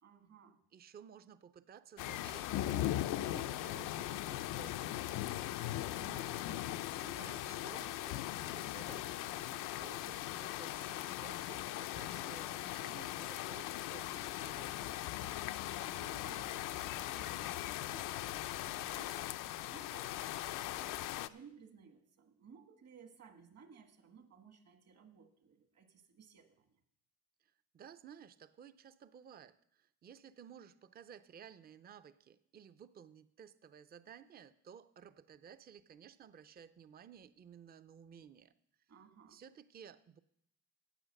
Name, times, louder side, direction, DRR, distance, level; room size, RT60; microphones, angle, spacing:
voice 1, 0.0-0.6 5.2-5.6 5.9-6.8 15.9-18.2 18.6-19.3 19.6-26.8 38.9-39.4, right 6 dB, 55° right, 7 dB, 1.6 m, -59 dB
voice 2, 0.7-5.5 6.9-14.9 27.4-38.5 39.3-40.2, right 8 dB, 30° right, 13 dB, 0.5 m, -56 dB
sound 1, 2.0-21.3, left 14 dB, 85° left, 0.5 m, -39 dB
10.0 x 8.3 x 6.4 m, 0.71 s
cardioid pair, 115°, 31 cm